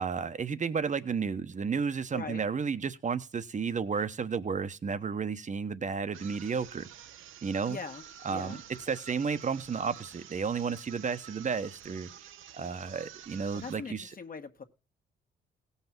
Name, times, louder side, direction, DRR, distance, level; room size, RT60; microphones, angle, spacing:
voice 1, 0.0-6.9 7.4-7.8 8.2-8.6 8.9-12.1 12.5-14.1, right 5 dB, 35° right, 1.0 m, -32 dB
voice 2, 2.1-2.4 7.6-8.0 8.3-8.6 13.5-14.6, left 5 dB, 45° left, 1.6 m, -41 dB
sound 1, 6.1-13.9, right 10 dB, 80° right, 0.9 m, -50 dB
16.5 x 5.7 x 6.1 m
cardioid pair, 75°, 20 cm